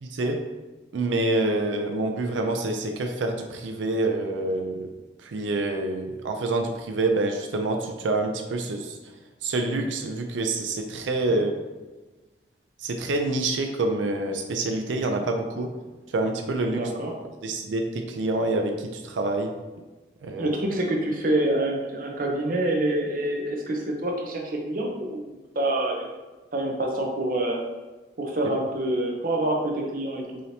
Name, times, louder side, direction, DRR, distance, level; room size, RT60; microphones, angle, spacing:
voice 1, 0.0-0.4 0.9-4.9 5.2-9.0 9.4-11.5 12.8-15.7 16.1-16.9 17.4-19.5 20.2-20.5, right 2 dB, 90° right, 4 dB, 0.4 m, -27 dB
voice 2, 16.7-17.1 20.4-26.1 26.5-27.6 28.2-30.4, right 1 dB, 50° right, 1 dB, 0.7 m, -26 dB
4.8 x 2.8 x 2.7 m, 1.2 s
head